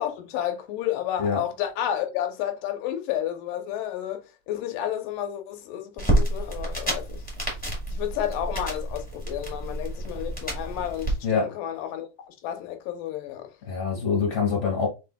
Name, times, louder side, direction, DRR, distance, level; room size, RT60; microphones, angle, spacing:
voice 1, 0.0-4.2 4.5-7.2 7.9-13.5, left 11 dB, 80° left, 2.3 m, -31 dB
sound 1, 6.0-11.1, right 1 dB, 10° left, 0.5 m, -29 dB
voice 2, 13.7-14.9, left 5 dB, 30° left, 1.7 m, -25 dB
5.1 x 4.1 x 2.2 m
omnidirectional pair, 3.9 m